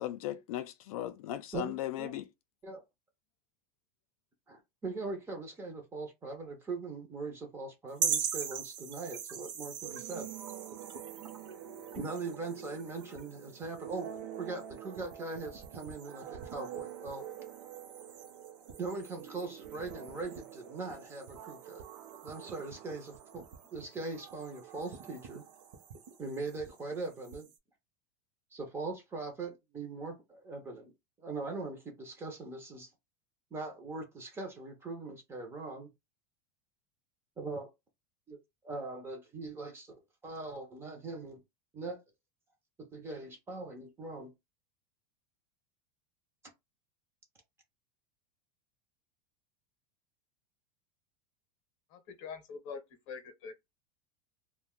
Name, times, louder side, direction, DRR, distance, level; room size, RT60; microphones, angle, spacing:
voice 1, 0.0-2.3, left 13 dB, 75° left, 0.4 m, -37 dB
voice 2, 1.5-2.2 2.6-2.8 4.5-10.3 12.0-14.1 14.4-17.2 18.8-21.9 22.2-23.4 23.7-25.4 26.2-27.5 28.5-30.9 31.2-32.9 33.5-35.9 37.4-37.7 38.3-38.4 38.6-39.9 40.2-41.4 41.7-42.0 42.8-44.3, right 3 dB, 15° right, 0.5 m, -41 dB
sound 1, 7.9-27.6, right 7 dB, 50° right, 0.7 m, -43 dB
sound 2, 9.8-26.2, right 10 dB, 85° right, 0.5 m, -48 dB
voice 3, 51.9-52.8 53.1-53.6, left 5 dB, 40° left, 0.7 m, -44 dB
2.5 x 2.1 x 3.5 m
supercardioid pair, 165°, 19 cm